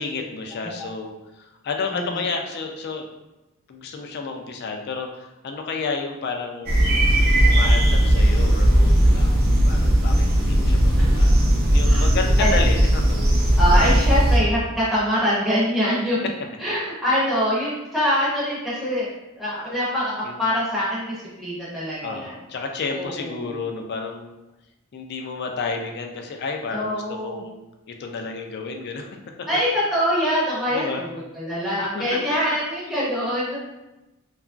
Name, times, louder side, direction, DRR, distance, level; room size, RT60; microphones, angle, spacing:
voice 1, 0.0-3.1 3.7-9.3 9.7-11.3 11.7-13.2 20.2-20.5 22.0-24.3 24.9-27.6 27.9-29.5 30.7-31.0 31.9-32.6, left 4 dB, 45° left, 3 dB, 0.3 m, -31 dB
sound 1, 6.7-14.4, right 1 dB, 45° right, 0.5 m, -17 dB
voice 2, 13.6-16.3 16.6-19.1 19.4-22.3 22.9-23.5 26.7-27.4 29.5-31.1 31.4-33.6, equal, ahead, -9 dB, 0.6 m, -24 dB
2.8 x 2.3 x 2.4 m, 1.0 s
head